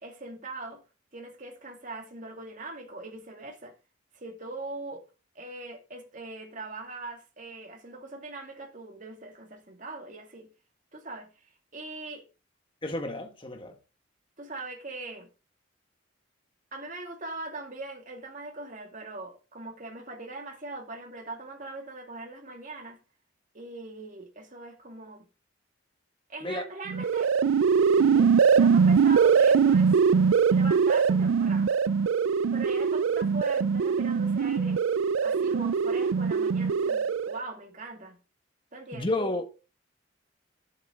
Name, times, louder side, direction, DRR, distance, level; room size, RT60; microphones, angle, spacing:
voice 1, 0.0-0.8 1.1-3.7 4.1-5.0 5.3-10.5 10.9-12.2 14.4-15.3 16.7-23.0 23.5-25.3 26.3-27.3 28.5-29.9 30.5-31.8 32.5-34.8 35.2-38.2 38.7-39.1, right 2 dB, 40° right, 2.4 m, -41 dB
voice 2, 12.8-13.8 26.4-26.6 28.0-28.4 38.9-39.5, left 1 dB, 25° left, 1.6 m, -32 dB
sound 1, 26.9-37.4, right 6 dB, 90° right, 0.4 m, -22 dB
11.0 x 8.1 x 3.7 m
head